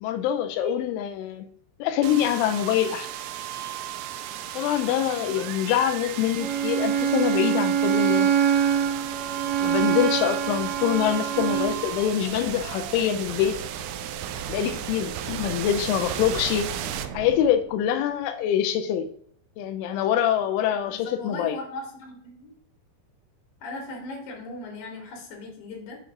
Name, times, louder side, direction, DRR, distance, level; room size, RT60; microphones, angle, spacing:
voice 1, 0.0-1.5 1.8-3.1 4.5-8.3 9.6-13.6 14.5-16.7 17.1-19.1 19.6-21.6, left 10 dB, 85° left, 7 dB, 3.1 m, -25 dB
sound 1, 2.0-17.9, right 10 dB, 90° right, 3.0 m, -35 dB
Bowed string instrument, 6.4-11.8, right 8 dB, 70° right, 2.5 m, -24 dB
voice 2, 20.8-22.5 23.6-26.0, left 2 dB, 45° left, -1 dB, 3.4 m, -38 dB
7.6 x 6.5 x 3.8 m, 0.63 s
omnidirectional pair, 5.4 m